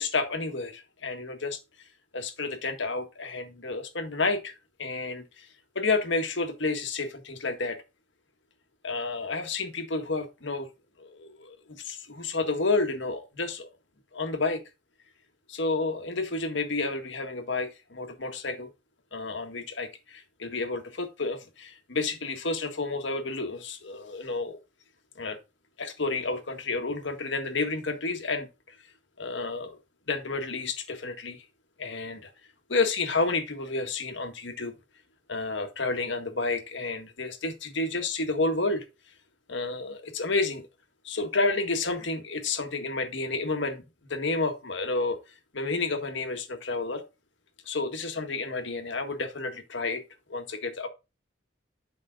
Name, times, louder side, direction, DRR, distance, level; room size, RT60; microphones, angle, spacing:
voice 1, 0.0-1.6 2.1-5.5 5.8-7.8 8.8-10.7 11.0-13.7 14.1-14.6 15.5-18.7 19.1-24.6 25.2-25.4 25.8-28.8 29.2-29.8 30.1-31.4 31.8-32.3 32.7-34.7 35.3-38.8 39.5-40.6 41.0-43.8 44.1-45.2 45.5-47.0 47.7-50.0 50.3-50.9, left 3 dB, 75° left, 1.7 m, -30 dB
10.5 x 5.5 x 3.8 m
head